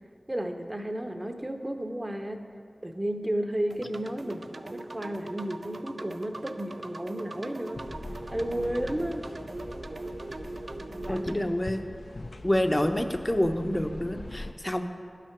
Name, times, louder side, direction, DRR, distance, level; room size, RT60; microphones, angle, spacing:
voice 1, 0.3-2.4 2.8-7.8 8.3-9.2 11.1-11.3, right 1 dB, 25° right, 5 dB, 0.8 m, -33 dB
sound 1, 3.7-11.4, right 2 dB, 65° right, 0.3 m, -41 dB
sound 2, 7.7-14.5, left 2 dB, 65° left, 0.4 m, -42 dB
voice 2, 11.1-11.8 12.4-14.9, left 1 dB, 25° left, 7 dB, 0.7 m, -27 dB
11.0 x 5.9 x 5.9 m, 2.2 s
wide cardioid pair, 45°, 0 cm